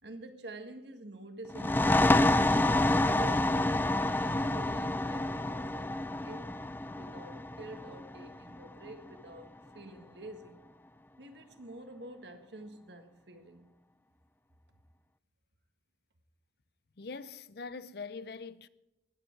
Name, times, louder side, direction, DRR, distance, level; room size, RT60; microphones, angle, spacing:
voice 1, 0.0-1.9 2.5-6.0 6.2-6.5 6.9-10.6 11.2-13.7, right 1 dB, 70° right, 1.8 m, -48 dB
sound 1, 1.5-8.9, left 2 dB, 10° left, 0.4 m, -28 dB
voice 2, 17.0-18.7, left 4 dB, 60° left, 0.6 m, -43 dB
19.5 x 8.0 x 4.7 m
head